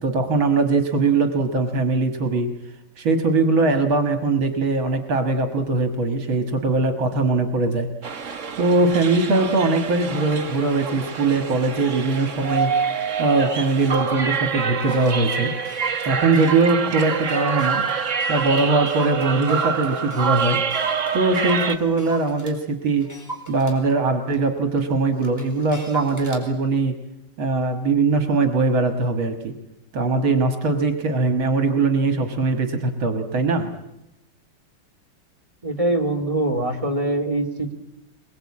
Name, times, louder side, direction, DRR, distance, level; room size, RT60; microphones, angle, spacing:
voice 1, 0.0-2.5 3.0-7.9 8.6-12.7 13.2-15.5 16.0-17.8 18.3-20.6 21.1-23.1 23.5-27.0 27.4-29.5 29.9-33.7, right 3 dB, 70° right, 6 dB, 2.4 m, -21 dB
sound 1, 8.0-21.8, right 6 dB, 40° right, 1.5 m, -26 dB
Clock, 13.4-13.5 13.7-13.8 14.2-14.3 14.6-22.6 23.0-26.4, right 3 dB, 5° left, 4.5 m, -37 dB
voice 2, 35.6-37.7, right 1 dB, 15° right, 3 dB, 2.0 m, -23 dB
23.0 x 22.0 x 8.6 m, 0.90 s
omnidirectional pair, 2.3 m